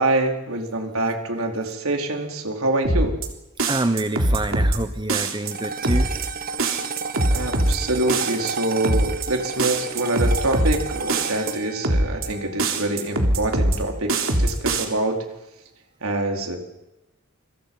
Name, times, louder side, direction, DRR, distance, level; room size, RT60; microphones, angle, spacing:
voice 1, 0.0-3.2 7.3-15.2 16.0-16.6, right 2 dB, 85° right, 3 dB, 4.5 m, -25 dB
sound 1, 2.8-3.3 3.6-4.8 5.1-5.5 5.8-6.3 6.6-7.8 8.1-8.5 8.8-9.3 9.6-10.8 11.1-11.5 11.8-12.3 12.6-13.8 14.1-14.8, right 1 dB, 65° right, 3.8 m, -21 dB
voice 2, 3.7-6.1, right 2 dB, 20° right, 10 dB, 1.1 m, -26 dB
sound 2, 5.5-14.0, right 5 dB, 45° right, 1.2 m, -33 dB
28.5 x 25.0 x 5.7 m, 0.96 s
head